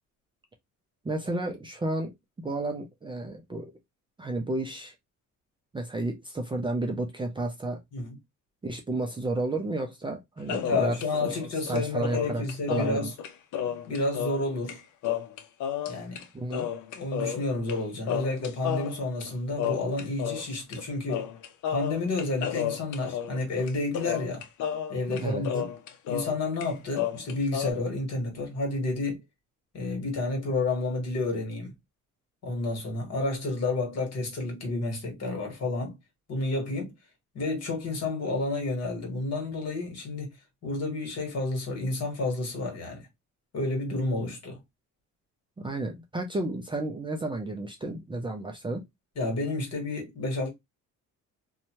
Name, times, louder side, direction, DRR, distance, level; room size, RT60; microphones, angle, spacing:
voice 1, 1.0-2.1 2.4-3.7 4.2-4.9 5.7-7.8 8.6-11.0 11.2-11.3 11.7-12.4 12.7-13.1 16.3-16.7 25.1-25.4 45.6-48.8, right 2 dB, 15° right, 0.4 m, -31 dB
sound 1, 10.5-14.4 14.7-14.8 15.0-16.2 16.5-17.8 18.1-20.4 20.7-20.8 21.1-26.4 26.6-27.7, left 9 dB, 70° left, 0.6 m, -32 dB
voice 2, 10.6-13.1 13.9-14.8 15.9-16.2 16.9-21.2 21.7-24.4 24.9-25.7 26.1-29.2 29.7-31.7 32.4-35.9 36.3-36.9 37.3-40.3 40.6-43.1 43.5-44.6 49.1-50.5, left 2 dB, 50° left, 1.5 m, -30 dB
2.7 x 2.2 x 2.9 m
cardioid pair, 125°, 32 cm